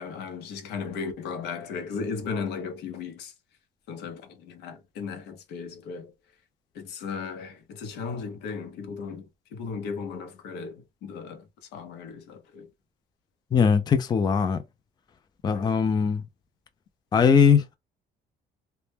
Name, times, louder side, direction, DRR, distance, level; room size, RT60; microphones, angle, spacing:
voice 1, 0.0-3.3 3.9-6.1 6.7-12.7 15.5-15.7, left 5 dB, 80° left, 0.7 m, -36 dB
voice 2, 13.5-14.6 15.4-16.2 17.1-17.8, left 6 dB, 25° left, 0.4 m, -20 dB
2.1 x 2.1 x 3.2 m
cardioid pair, 110°, 17 cm